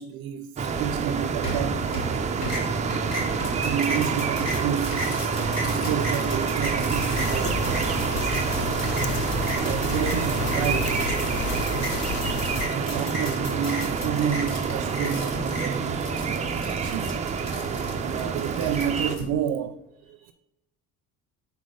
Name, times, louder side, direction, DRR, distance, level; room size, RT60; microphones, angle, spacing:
voice 1, 0.0-1.8 3.6-5.0 5.6-7.7 9.6-11.0 12.3-17.1 17.9-19.8 20.0-20.3, right 9 dB, 80° right, 0.5 m, -30 dB
sound 1, 0.6-19.1, right 5 dB, 20° right, 0.3 m, -27 dB
sound 2, 1.4-2.1 2.4-19.2, equal, 50° left, 2.0 m, -35 dB
sound 3, 6.9-12.7, left 7 dB, 75° left, 0.7 m, -33 dB
5.2 x 4.0 x 5.3 m
cardioid pair, 155°, 35 cm